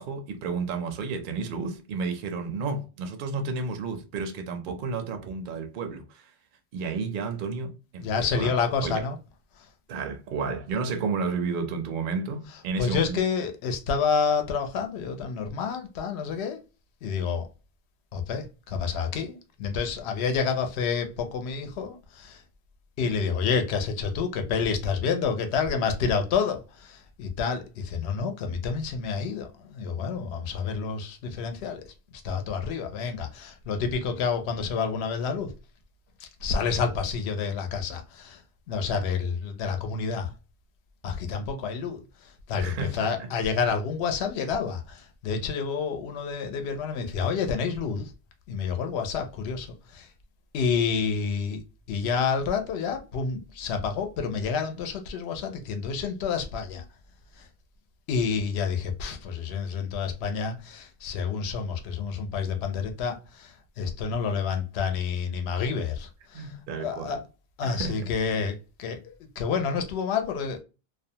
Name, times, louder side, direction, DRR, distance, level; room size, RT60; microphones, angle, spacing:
voice 1, 0.0-6.2 6.7-8.5 8.8-9.0 9.9-13.2 42.6-43.3 66.3-67.1 67.6-68.0, right 4 dB, 60° right, 0.6 m, -32 dB
voice 2, 8.0-9.2 12.8-16.6 17.0-17.5 18.1-22.4 23.0-31.8 32.2-35.5 36.2-38.4 38.7-40.3 41.0-42.0 42.5-48.1 48.5-49.7 49.9-50.1 50.5-51.6 51.9-56.8 57.4-57.5 58.1-67.2 67.6-70.6, left 5 dB, 80° left, 0.8 m, -29 dB
2.4 x 2.1 x 2.6 m
omnidirectional pair, 1.1 m